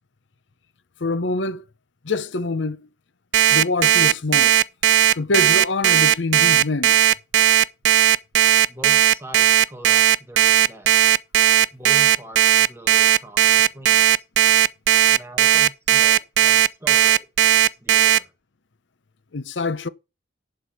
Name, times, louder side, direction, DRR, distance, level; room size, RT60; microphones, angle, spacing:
voice 1, 1.0-1.6 2.0-2.9 3.5-4.6 5.1-7.0 19.3-19.9, left 3 dB, 65° left, 0.7 m, -25 dB
Alarm, 3.3-18.2, right 11 dB, 65° right, 0.4 m, -16 dB
voice 2, 8.7-10.9 11.7-14.2 15.1-18.3, right 1 dB, 15° right, 1.7 m, -41 dB
11.0 x 4.9 x 5.9 m
head